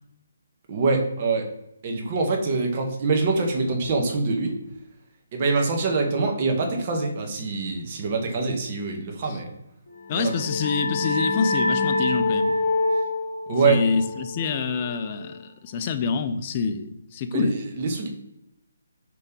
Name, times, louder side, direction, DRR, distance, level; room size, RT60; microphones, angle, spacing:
voice 1, 0.7-1.5 1.8-4.6 5.3-9.5 10.1-10.3 13.5-13.8 17.3-18.1, right 3 dB, 35° right, 2 dB, 0.7 m, -24 dB
sound 1, 10.0-15.4, left 2 dB, 60° left, 0.8 m, -26 dB
voice 2, 10.1-12.5 13.6-17.6, left 5 dB, 30° left, 9 dB, 0.3 m, -26 dB
3.1 x 2.8 x 3.6 m, 0.89 s
figure-of-eight pair, 145°, 0 cm